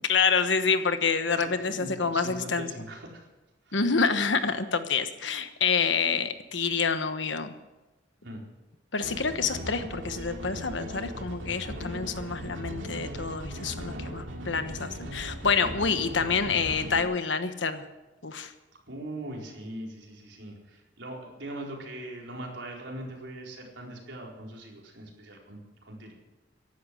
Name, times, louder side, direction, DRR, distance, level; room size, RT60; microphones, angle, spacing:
voice 1, 0.1-2.7 3.7-7.5 8.9-17.8 18.2-18.5, left 5 dB, 75° left, 9 dB, 1.2 m, -27 dB
voice 2, 1.4-3.3 3.7-3.8 8.2-8.5 15.5-15.8 16.2-16.3 18.9-26.1, right 1 dB, 70° right, -1 dB, 4.4 m, -41 dB
sound 1, 9.0-17.0, equal, 90° right, 2.4 m, -38 dB
15.0 x 11.5 x 7.8 m, 1.1 s
head